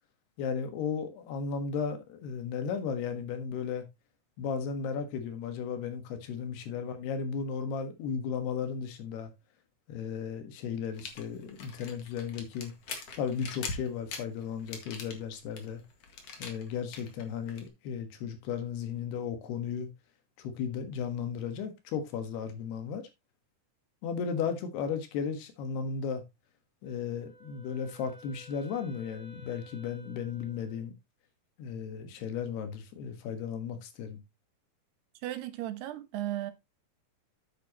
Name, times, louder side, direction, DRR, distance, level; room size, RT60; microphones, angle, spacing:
voice 1, 0.4-3.9 4.4-9.3 9.9-12.7 13.2-15.8 16.4-19.9 20.4-23.0 24.0-26.2 26.8-30.9 31.6-34.2, left 6 dB, 80° left, 3.6 m, -35 dB
sound 1, 10.9-17.7, left 4 dB, 50° left, 2.4 m, -43 dB
Wind instrument woodwind instrument, 26.8-30.9, right 1 dB, 35° left, 0.8 m, -54 dB
voice 2, 35.2-36.5, right 14 dB, 90° right, 3.2 m, -35 dB
9.3 x 8.6 x 3.0 m
omnidirectional pair, 4.6 m